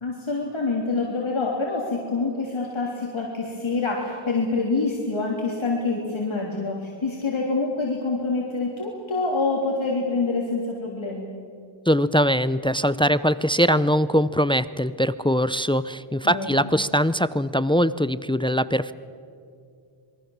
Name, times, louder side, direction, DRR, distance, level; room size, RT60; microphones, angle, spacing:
voice 1, 0.0-11.3 16.2-16.7, left 3 dB, 70° left, -2 dB, 3.5 m, -26 dB
voice 2, 11.9-18.9, equal, 10° left, 16 dB, 0.6 m, -22 dB
27.5 x 23.0 x 7.3 m, 2.5 s
wide cardioid pair, 65°, 49 cm